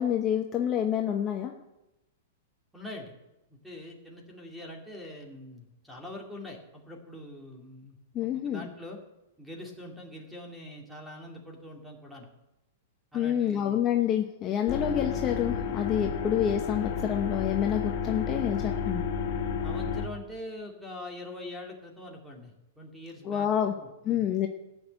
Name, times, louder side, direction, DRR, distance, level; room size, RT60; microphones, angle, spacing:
voice 1, 0.0-1.5 8.1-8.7 13.1-19.0 23.2-23.7 24.0-24.5, left 9 dB, 25° left, 3 dB, 0.9 m, -28 dB
voice 2, 2.7-3.1 3.5-9.0 9.4-12.3 13.1-13.8 19.6-24.3, left 1 dB, ahead, 1 dB, 2.3 m, -43 dB
sound 1, 14.7-20.1, left 6 dB, 45° left, 2.2 m, -31 dB
14.5 x 6.4 x 8.9 m, 0.96 s
supercardioid pair, 155°, 0 cm